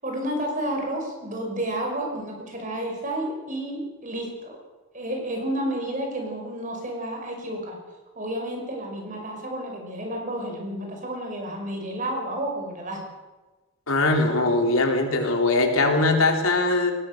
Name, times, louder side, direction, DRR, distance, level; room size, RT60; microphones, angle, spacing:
voice 1, 0.0-4.6 4.9-7.8 8.2-13.0, right 1 dB, 40° right, 2 dB, 5.7 m, -31 dB
voice 2, 13.9-16.9, left 2 dB, 80° left, 3 dB, 3.7 m, -21 dB
21.5 x 18.5 x 6.8 m, 1.2 s
head